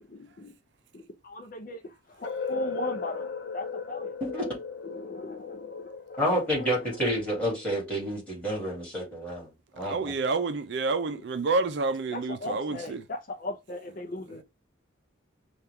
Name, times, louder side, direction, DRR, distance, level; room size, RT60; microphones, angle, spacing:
voice 1, 0.1-0.5 0.9-4.2 4.8-6.2 6.5-6.6 11.1-11.2 12.1-14.4, left 2 dB, 45° left, 0.5 m, -37 dB
sound 1, 2.2-8.1, left 6 dB, 80° left, 0.7 m, -37 dB
voice 2, 6.2-10.1, equal, 5° left, 2.3 m, -29 dB
voice 3, 9.8-13.0, right 3 dB, 60° right, 0.5 m, -29 dB
5.5 x 2.4 x 3.4 m
head